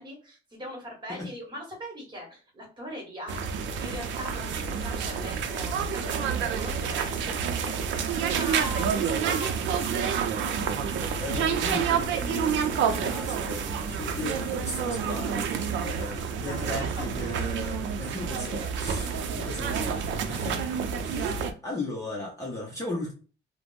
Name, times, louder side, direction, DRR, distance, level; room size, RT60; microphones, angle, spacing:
voice 1, 0.0-10.4 14.0-14.1 16.0-16.1 16.4-17.0 18.1-18.7 19.0-19.2, equal, 25° right, 0 dB, 1.2 m, -41 dB
sound 1, 3.3-21.5, right 7 dB, 85° right, 0.5 m, -29 dB
sound 2, 10.4-20.5, right 3 dB, 40° right, 0.8 m, -43 dB
voice 2, 11.2-23.1, left 2 dB, 15° left, -3 dB, 0.6 m, -37 dB
3.3 x 2.0 x 2.4 m, 0.38 s
cardioid pair, 160°, 19 cm